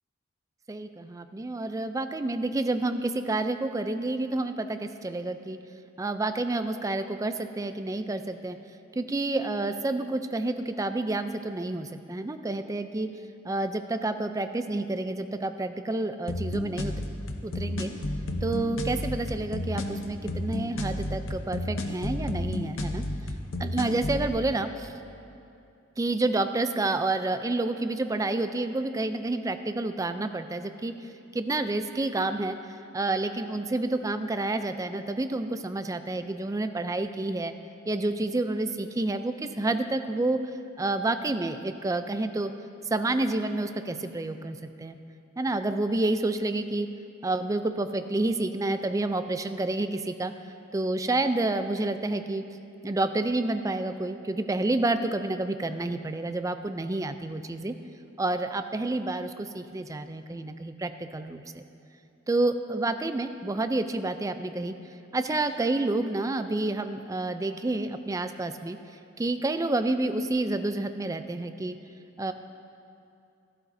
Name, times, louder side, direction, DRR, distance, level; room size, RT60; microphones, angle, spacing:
voice 1, 0.7-5.6 6.0-8.6 8.9-13.1 13.4-17.0 17.4-17.9 18.4-23.0 23.6-24.9 26.0-30.9 31.3-32.6 32.9-37.5 37.9-40.4 40.8-42.5 42.9-45.0 45.4-46.9 47.2-50.3 50.7-52.4 52.8-57.7 58.2-61.6 62.3-64.7 65.1-68.8 69.2-71.8 72.2-72.3, right 2 dB, 15° right, 9 dB, 0.4 m, -29 dB
sound 1, 16.3-24.3, left 1 dB, 70° left, 0.8 m, -32 dB
14.5 x 12.0 x 2.7 m, 2.6 s
head